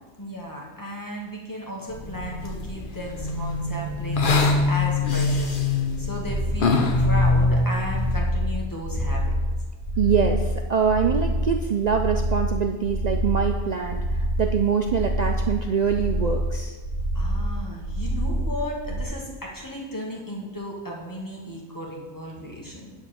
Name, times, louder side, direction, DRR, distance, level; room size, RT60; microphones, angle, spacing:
voice 1, 0.2-5.6 6.0-9.3 17.1-22.9, equal, 15° left, -2 dB, 1.4 m, -35 dB
sound 1, 1.9-8.2, left 3 dB, 45° left, 0.9 m, -24 dB
sound 2, 6.2-19.0, equal, 65° left, 1.8 m, -27 dB
voice 2, 10.0-16.8, right 6 dB, 70° right, 4 dB, 0.4 m, -24 dB
9.8 x 3.6 x 6.9 m, 1.2 s
omnidirectional pair, 1.3 m